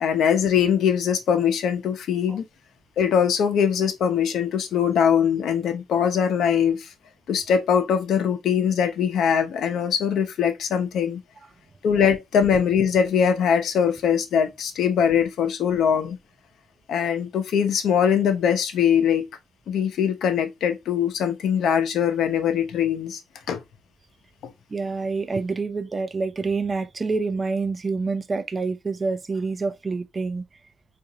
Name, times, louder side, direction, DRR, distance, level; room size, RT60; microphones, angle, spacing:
voice 1, 0.0-2.4 3.0-6.9 7.3-11.2 11.8-16.2 16.9-19.3 19.7-23.2 23.5-23.6 24.4-24.5, left 8 dB, 75° left, 0.7 m, -22 dB
voice 2, 24.7-30.4, right 4 dB, 30° right, 0.4 m, -27 dB
3.7 x 2.5 x 2.8 m
cardioid pair, 90°, 0 cm